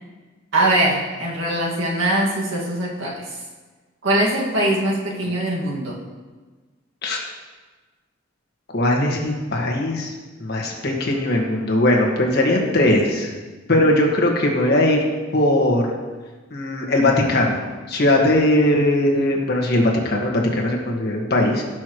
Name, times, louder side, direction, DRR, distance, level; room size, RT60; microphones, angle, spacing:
voice 1, 0.5-3.4 4.0-6.0, right 1 dB, 85° right, -3 dB, 2.0 m, -22 dB
voice 2, 8.7-10.1 10.4-13.3 13.7-15.0 15.3-15.9 16.5-21.6, left 1 dB, 55° left, -1 dB, 1.7 m, -19 dB
17.0 x 6.2 x 3.1 m, 1.3 s
head